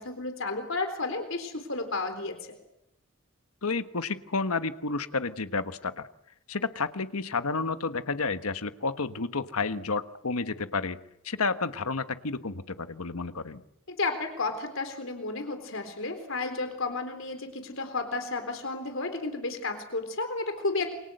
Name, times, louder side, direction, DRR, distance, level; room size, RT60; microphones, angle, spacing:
voice 1, 0.0-2.4 13.9-20.9, left 3 dB, 65° left, 7 dB, 3.9 m, -32 dB
voice 2, 3.6-6.1 6.5-11.0 11.2-13.6, left 4 dB, 90° left, 11 dB, 1.3 m, -31 dB
28.5 x 23.5 x 8.0 m, 0.81 s
head